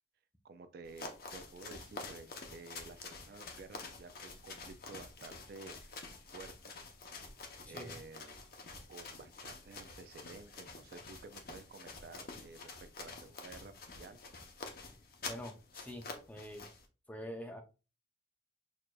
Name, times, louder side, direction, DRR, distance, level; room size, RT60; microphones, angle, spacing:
voice 1, 0.4-6.0 6.3-6.7 7.7-8.4 8.9-14.2, right 3 dB, 55° right, 0.3 m, -52 dB
sound 1, 0.8-16.8, left 3 dB, 50° left, 0.7 m, -48 dB
voice 2, 7.6-8.0 15.3-16.7 17.1-17.6, equal, 10° left, 0.5 m, -46 dB
6.0 x 2.6 x 2.2 m
head